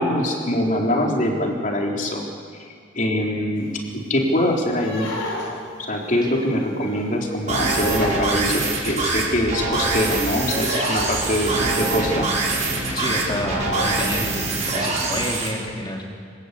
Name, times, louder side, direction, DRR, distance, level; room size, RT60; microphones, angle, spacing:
voice 1, 0.0-2.2 3.0-3.7 4.1-5.1 5.9-12.3, left 1 dB, 40° left, 0 dB, 3.8 m, -23 dB
sound 1, 3.6-3.7 3.9-4.2 4.7-12.0 12.4-12.6 12.9-13.0 13.2-14.5 14.9-15.0 15.4-15.5, left 1 dB, 70° left, 4.6 m, -33 dB
sound 2, 7.5-15.5, right 3 dB, 35° right, 5.5 m, -24 dB
voice 2, 12.9-16.2, left 1 dB, 25° left, 0 dB, 3.6 m, -29 dB
26.0 x 18.5 x 8.4 m, 2.1 s
head